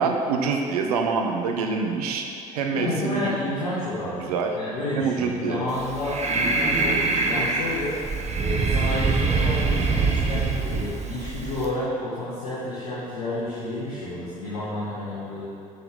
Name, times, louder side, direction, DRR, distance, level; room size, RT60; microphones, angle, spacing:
voice 1, 0.0-2.2 2.5-3.3 4.2-4.5 4.9-5.6, right 5 dB, 75° right, 3 dB, 0.8 m, -25 dB
voice 2, 2.7-4.3 4.5-15.4, left 1 dB, 75° left, -9 dB, 2.1 m, -30 dB
Breathing, 5.7-11.7, right 3 dB, 35° right, 1.1 m, -24 dB
12.5 x 6.7 x 3.9 m, 2.7 s
figure-of-eight pair, 50°, 19 cm